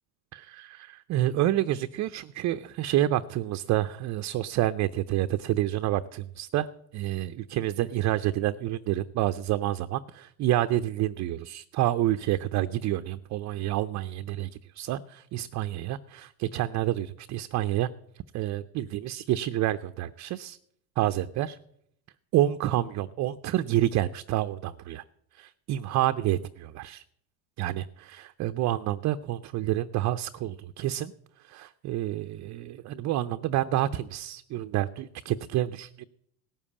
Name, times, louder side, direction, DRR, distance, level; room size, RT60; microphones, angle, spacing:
voice 1, 0.3-6.7 6.9-17.9 18.3-20.6 21.0-21.6 22.3-25.0 25.3-27.0 27.6-31.1 31.4-36.0, right 14 dB, 35° right, 10 dB, 0.5 m, -28 dB
17.5 x 7.2 x 8.5 m, 0.72 s
supercardioid pair, 115°, 49 cm